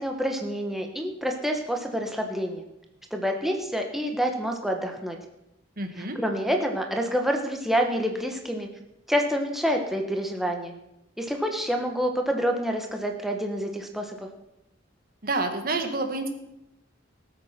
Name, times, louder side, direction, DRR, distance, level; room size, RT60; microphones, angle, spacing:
voice 1, 0.0-2.6 3.1-5.2 6.0-8.7 9.1-10.7 11.2-14.2, equal, ahead, 2 dB, 1.3 m, -27 dB
voice 2, 5.8-6.2 15.2-16.3, right 2 dB, 50° right, 6 dB, 1.8 m, -28 dB
18.5 x 7.9 x 5.9 m, 0.85 s
head